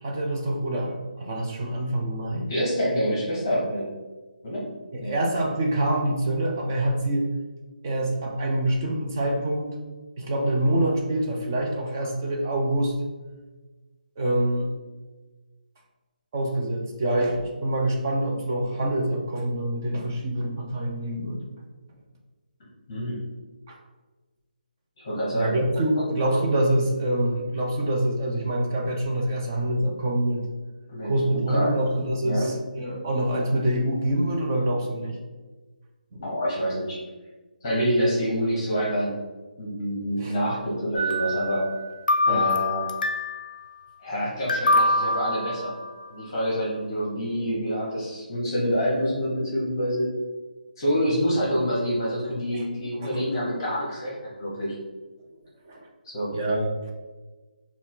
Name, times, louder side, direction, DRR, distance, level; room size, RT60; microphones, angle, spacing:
voice 1, 0.0-2.5 4.9-7.3 7.8-9.8 10.2-12.9 14.2-14.7 16.3-21.4 23.7-23.8 25.3-30.4 31.0-35.2 36.1-36.2 40.2-40.3 42.3-42.4 52.5-52.7 53.0-53.2 55.7-55.9 56.3-56.9, right 1 dB, 20° right, 0 dB, 0.4 m, -26 dB
voice 2, 2.5-3.9 4.4-4.7 5.0-5.1 22.9-23.2 25.0-25.5 30.9-31.7 32.2-32.5 36.2-37.0 37.6-39.2 39.6-41.6 42.3-42.9 44.0-45.8 46.1-50.1 50.8-54.7 56.0-56.3, equal, 25° left, -6 dB, 1.0 m, -27 dB
sound 1, 40.9-41.8 42.1-43.5 44.5-46.1, left 2 dB, 60° left, 0.5 m, -24 dB
4.1 x 2.3 x 3.7 m, 1.3 s
hypercardioid pair, 175°, 5 cm